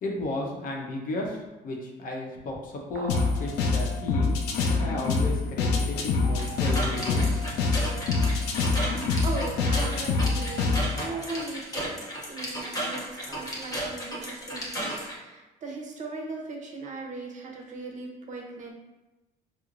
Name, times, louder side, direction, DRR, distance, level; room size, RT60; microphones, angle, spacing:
voice 1, 0.0-7.3, left 2 dB, 55° left, 0 dB, 0.7 m, -34 dB
sound 1, 2.9-3.5, right 5 dB, 85° right, 0.4 m, -41 dB
sound 2, 3.1-11.1, left 4 dB, 90° left, 0.5 m, -26 dB
sound 3, 6.4-15.1, right 1 dB, 20° left, 0.8 m, -34 dB
voice 2, 9.2-11.9 12.3-18.7, right 3 dB, 45° right, 0 dB, 0.7 m, -38 dB
4.5 x 2.0 x 2.5 m, 1.0 s
cardioid pair, 110°, 17 cm